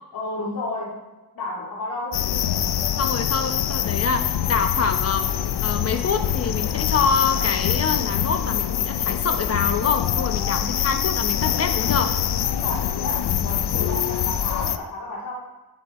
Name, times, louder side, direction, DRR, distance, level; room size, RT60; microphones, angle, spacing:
voice 1, 0.1-1.1 1.3-2.3 10.6-10.7 12.5-15.3, left 2 dB, 60° left, -6 dB, 2.5 m, -32 dB
sound 1, 2.1-14.8, left 10 dB, 80° left, 0.7 m, -24 dB
voice 2, 3.0-5.3 5.6-12.2, left 5 dB, 40° left, 7 dB, 1.0 m, -25 dB
14.5 x 7.5 x 4.3 m, 1.2 s
wide cardioid pair, 170°, 38 cm